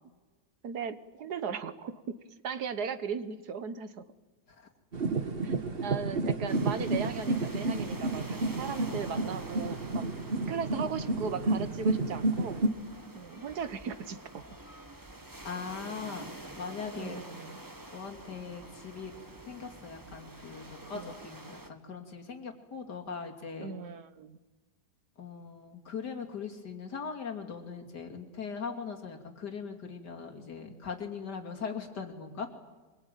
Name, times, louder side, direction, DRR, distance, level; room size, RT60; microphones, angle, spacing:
voice 1, 0.6-2.2 2.4-4.0 5.4-10.0 10.5-12.6 13.1-14.4 17.0-17.6 20.9-21.1 23.6-24.4, right 6 dB, 65° right, 12 dB, 1.8 m, -37 dB
sound 1, 4.9-12.7, right 2 dB, 35° right, 1.4 m, -31 dB
sound 2, 6.5-21.7, right 1 dB, 10° right, 1.5 m, -47 dB
voice 2, 15.4-16.3 16.6-17.2 17.9-19.1 19.5-23.7 25.2-32.5, left 5 dB, 75° left, 2 dB, 3.2 m, -40 dB
24.5 x 22.5 x 9.2 m, 1.2 s
omnidirectional pair, 1.8 m